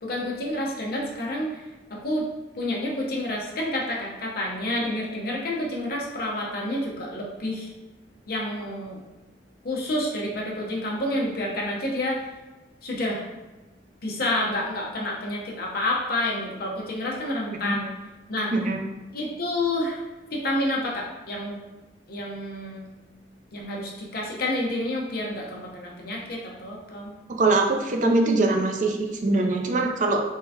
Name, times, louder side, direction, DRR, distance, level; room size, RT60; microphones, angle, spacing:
voice 1, 0.0-1.6 1.9-2.3 2.6-7.7 8.3-9.0 9.6-12.2 12.8-13.3 14.0-17.9 18.3-18.5 19.1-20.0 20.3-21.6 22.1-22.9 23.5-27.1, left 1 dB, 55° left, -2 dB, 0.8 m, -29 dB
voice 2, 18.5-18.8 27.4-30.2, right 2 dB, 45° right, 2 dB, 0.5 m, -22 dB
3.7 x 3.2 x 2.8 m, 1.1 s
head